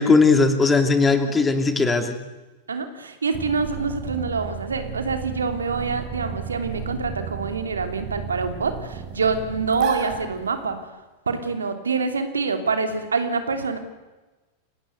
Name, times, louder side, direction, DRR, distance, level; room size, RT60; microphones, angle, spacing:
voice 1, 0.0-2.2, left 4 dB, 15° left, 7 dB, 2.9 m, -18 dB
voice 2, 2.7-10.8 11.3-13.8, right 4 dB, 75° right, 7 dB, 3.0 m, -26 dB
sound 1, 3.3-10.8, right 6 dB, 40° right, 4.3 m, -34 dB
29.0 x 18.5 x 8.1 m, 1.2 s
figure-of-eight pair, 90°, 0 cm